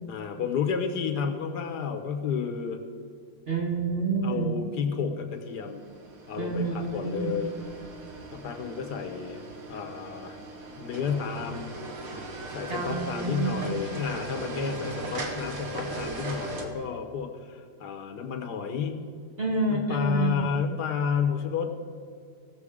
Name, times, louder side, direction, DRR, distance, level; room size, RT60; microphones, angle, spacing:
voice 1, 0.1-2.8 4.2-5.8 6.3-7.5 8.3-9.4 9.7-10.4 10.8-11.7 12.5-19.0 19.7-21.8, left 6 dB, 75° left, 6 dB, 1.5 m, -31 dB
voice 2, 3.5-4.6 6.4-7.4 12.7-13.8 19.4-20.5, right 3 dB, 35° right, -1 dB, 1.8 m, -28 dB
sound 1, 5.5-16.7, right 2 dB, 55° right, 1.6 m, -38 dB
16.5 x 7.0 x 4.8 m, 2.3 s
omnidirectional pair, 1.8 m